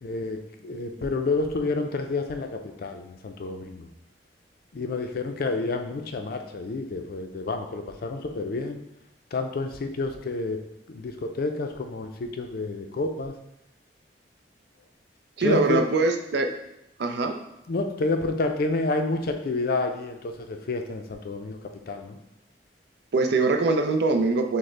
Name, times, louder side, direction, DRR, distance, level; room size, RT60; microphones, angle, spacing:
voice 1, 0.0-3.9 4.7-8.8 9.3-13.3 15.4-15.8 17.7-21.6 21.9-22.2, left 3 dB, 55° left, 5 dB, 0.4 m, -29 dB
voice 2, 15.4-16.5 17.0-17.4 23.1-24.6, right 3 dB, 70° right, 6 dB, 0.4 m, -23 dB
6.2 x 2.1 x 3.2 m, 0.85 s
head